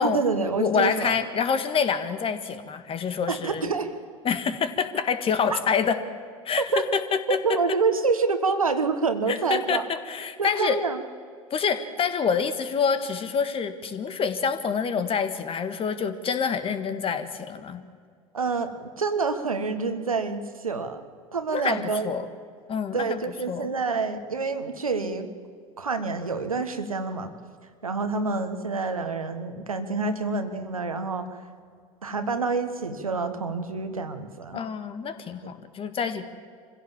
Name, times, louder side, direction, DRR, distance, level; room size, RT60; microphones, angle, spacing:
voice 1, 0.0-1.1 3.3-4.0 5.5-5.6 6.7-6.8 7.3-9.8 10.4-11.0 18.3-21.0 21.3-22.1 22.9-25.3 25.8-27.3 27.8-31.4 32.0-34.6 35.4-35.5, right 4 dB, 85° right, 8 dB, 1.4 m, -27 dB
voice 2, 0.6-3.7 4.2-6.0 6.4-6.6 6.9-7.4 9.3-10.8 11.5-17.8 21.5-22.2 22.7-23.2 23.5-23.7 34.5-36.2, left 6 dB, 30° left, 11 dB, 1.7 m, -27 dB
25.5 x 16.0 x 7.4 m, 2.1 s
figure-of-eight pair, 75°, 17 cm